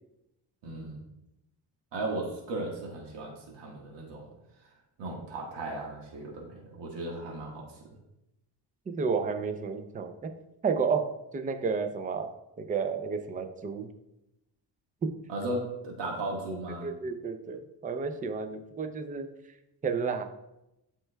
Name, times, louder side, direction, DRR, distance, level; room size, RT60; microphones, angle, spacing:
voice 1, 0.6-1.0 1.9-4.3 5.0-7.9 15.3-16.9, right 2 dB, 75° right, -1 dB, 1.6 m, -36 dB
voice 2, 8.9-10.3 10.6-13.9 15.0-15.1 16.8-19.3 19.8-20.2, right 5 dB, 20° right, 7 dB, 0.4 m, -31 dB
12.5 x 4.5 x 2.2 m, 0.88 s
cardioid pair, 140°, 43 cm